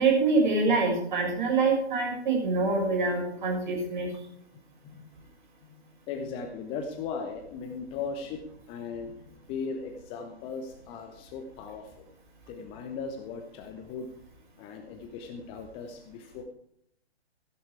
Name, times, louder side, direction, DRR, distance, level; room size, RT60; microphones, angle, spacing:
voice 1, 0.0-4.1, right 3 dB, 45° right, 1 dB, 6.7 m, -25 dB
voice 2, 6.1-12.1 12.5-14.1 14.6-16.4, left 5 dB, 15° left, 6 dB, 1.0 m, -38 dB
16.0 x 11.5 x 4.7 m, 0.70 s
figure-of-eight pair, 130°, 33 cm